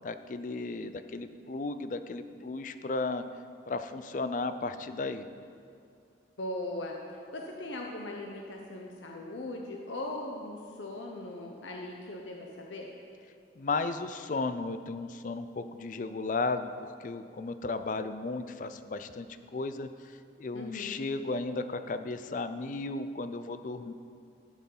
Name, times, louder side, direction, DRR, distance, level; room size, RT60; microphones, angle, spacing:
voice 1, 0.0-3.2 3.7-5.3 13.6-19.3 19.5-19.9 20.4-23.9, left 3 dB, 45° left, 11 dB, 0.4 m, -34 dB
voice 2, 6.4-12.9 20.5-21.0, left 1 dB, 85° left, 0 dB, 0.9 m, -39 dB
12.0 x 6.2 x 5.5 m, 2.4 s
head